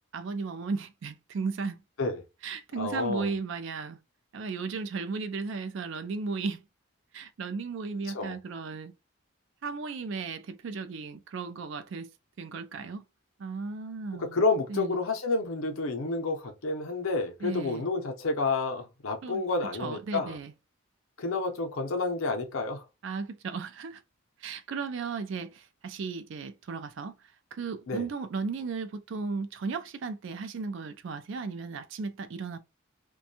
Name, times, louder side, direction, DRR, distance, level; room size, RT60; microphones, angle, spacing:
voice 1, 0.1-1.8 2.4-4.0 4.3-6.6 7.1-8.9 9.6-12.1 12.4-13.0 13.4-14.4 14.7-15.0 17.4-17.8 19.2-19.4 19.8-20.5 23.0-24.0 24.4-27.1 27.5-32.6, right 4 dB, 60° right, 0.4 m, -35 dB
voice 2, 2.8-3.3 8.1-8.3 14.1-20.4 21.2-22.8 27.9-28.1, left 3 dB, 75° left, 0.6 m, -30 dB
2.5 x 2.2 x 2.7 m
head